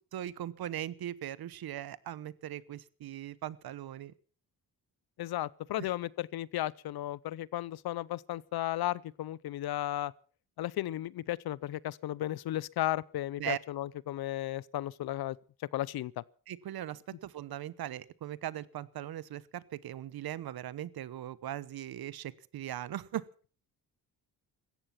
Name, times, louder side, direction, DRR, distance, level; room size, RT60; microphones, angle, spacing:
voice 1, 0.0-4.1 5.8-5.9 13.4-13.6 16.5-23.3, right 12 dB, 75° right, 1.0 m, -39 dB
voice 2, 5.2-10.1 10.6-15.4 15.7-16.2, left 14 dB, 75° left, 0.7 m, -34 dB
17.0 x 14.5 x 5.8 m
cardioid pair, 90°, 37 cm